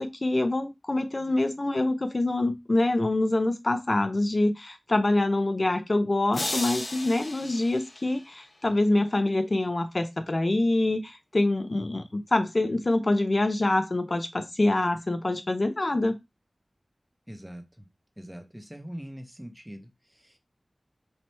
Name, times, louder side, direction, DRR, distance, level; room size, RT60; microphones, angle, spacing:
voice 1, 0.0-16.2, left 2 dB, 45° left, 8 dB, 0.6 m, -25 dB
sound 1, 6.3-8.6, left 2 dB, 80° left, 1.0 m, -35 dB
voice 2, 17.3-17.9 18.2-20.4, equal, 10° right, 5 dB, 0.9 m, -43 dB
3.3 x 2.9 x 4.2 m, 0.22 s
wide cardioid pair, 70°, 0 cm